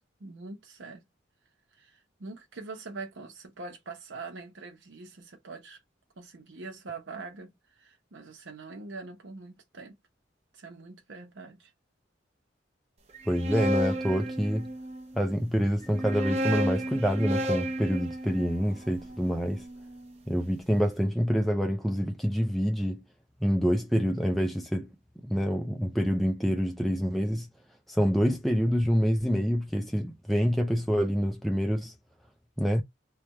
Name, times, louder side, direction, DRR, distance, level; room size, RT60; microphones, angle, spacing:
voice 1, 0.2-1.1 1.7-5.8 6.2-9.9 10.5-11.7, right 3 dB, 80° right, 0.8 m, -43 dB
sound 1, 13.1-15.0 15.8-20.0, equal, 35° right, 0.7 m, -32 dB
voice 2, 13.3-14.7 15.2-19.7 20.3-23.0 23.4-24.9 25.2-27.5 27.9-31.9 32.6-32.8, equal, ahead, 0.4 m, -27 dB
3.3 x 2.2 x 4.1 m
head